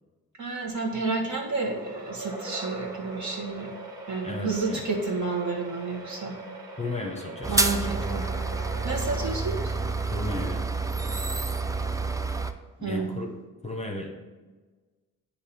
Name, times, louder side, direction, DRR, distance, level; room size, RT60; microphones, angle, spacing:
voice 1, 0.4-3.7 4.1-6.3 7.5-8.3 8.8-9.6 12.8-13.1, right 3 dB, 50° right, 0 dB, 1.5 m, -30 dB
sound 1, 1.6-10.3, right 2 dB, 80° right, 1.4 m, -41 dB
voice 2, 4.2-4.8 6.8-7.6 10.1-10.6 12.8-13.3 13.6-14.1, left 2 dB, 20° left, 2 dB, 0.9 m, -34 dB
sound 2, 7.4-12.5, right 3 dB, 10° right, 0.4 m, -28 dB
8.3 x 2.9 x 4.3 m, 1.3 s
supercardioid pair, 55°, 37 cm